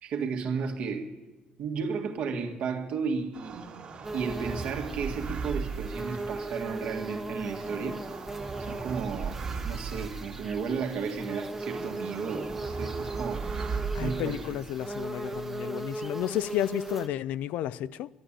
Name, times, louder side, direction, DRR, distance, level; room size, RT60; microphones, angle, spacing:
voice 1, 0.0-1.1 1.6-3.7 4.1-8.1 8.6-9.4 9.6-13.5 14.0-14.4, right 5 dB, 65° right, 1.7 m, -33 dB
sound 1, 3.3-15.7, right 5 dB, 45° right, 1.9 m, -38 dB
sound 2, 4.0-17.1, right 2 dB, 10° right, 0.9 m, -38 dB
voice 2, 13.9-18.1, left 12 dB, 80° left, 0.4 m, -32 dB
11.5 x 11.5 x 8.9 m
cardioid pair, 135°, 3 cm